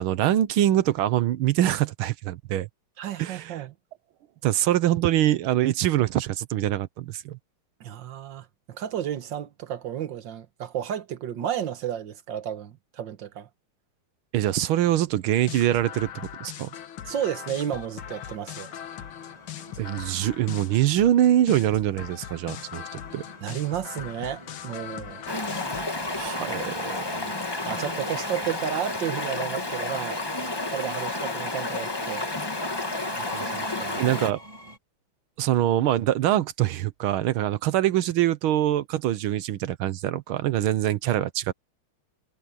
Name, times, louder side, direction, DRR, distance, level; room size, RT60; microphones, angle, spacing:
voice 1, 0.0-2.7 3.2-3.7 4.4-7.4 14.3-16.7 19.8-22.8 23.1-23.2 26.1-27.0 34.0-34.4 35.4-41.5, right 12 dB, 85° right, 1.7 m, -24 dB
voice 2, 3.0-3.7 7.8-13.5 17.1-18.7 23.4-25.2 26.5-27.4 27.6-30.2 30.7-32.3 33.2-34.0, right 10 dB, 65° right, 1.8 m, -32 dB
sound 1, 15.4-25.9, left 10 dB, 80° left, 2.0 m, -40 dB
Train, 18.0-34.8, right 1 dB, 15° right, 2.1 m, -48 dB
Stream, 25.3-34.3, left 2 dB, 15° left, 1.0 m, -31 dB
omnidirectional pair, 2.2 m